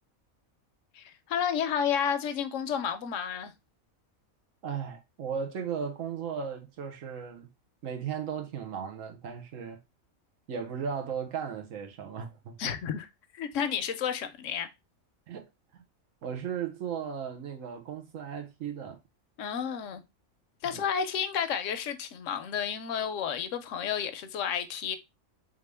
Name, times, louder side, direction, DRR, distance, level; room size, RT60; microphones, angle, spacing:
voice 1, 0.9-3.5 12.6-13.1 13.3-14.7 19.4-20.0 20.6-25.0, left 8 dB, 70° left, 1.0 m, -31 dB
voice 2, 4.6-7.5 7.8-9.8 10.5-12.7 15.3-15.8 16.2-19.0 20.6-20.8, right 7 dB, 70° right, 1.3 m, -36 dB
3.7 x 3.6 x 3.4 m
omnidirectional pair, 1.4 m